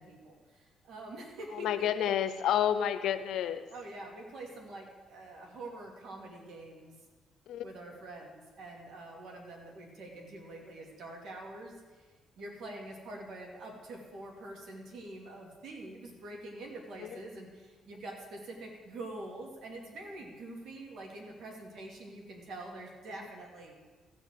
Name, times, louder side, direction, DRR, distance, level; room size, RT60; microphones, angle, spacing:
voice 1, 0.0-2.1 3.7-6.9 7.6-23.9, right 2 dB, 70° right, 1 dB, 2.7 m, -45 dB
voice 2, 1.5-3.6 7.5-7.6, left 10 dB, 80° left, 11 dB, 0.7 m, -29 dB
15.0 x 5.3 x 7.8 m, 1.4 s
cardioid pair, 90°, 0 cm